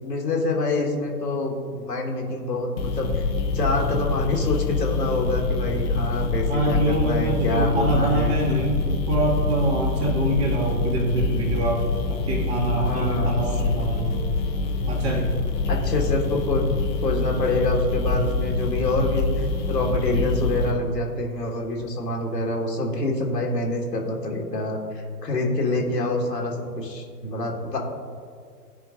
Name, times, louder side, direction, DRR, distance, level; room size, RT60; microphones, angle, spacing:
voice 1, 0.0-3.2 3.5-8.3 12.8-13.4 15.7-16.8 17.0-19.3 19.7-24.8 25.2-27.8, left 2 dB, 80° left, 0 dB, 1.7 m, -26 dB
sound 1, 2.8-20.7, left 3 dB, 25° left, 0.9 m, -25 dB
voice 2, 6.5-14.2 14.9-15.3, right 2 dB, 40° right, -2 dB, 2.1 m, -25 dB
15.0 x 5.2 x 2.5 m, 2.1 s
figure-of-eight pair, 130°, 49 cm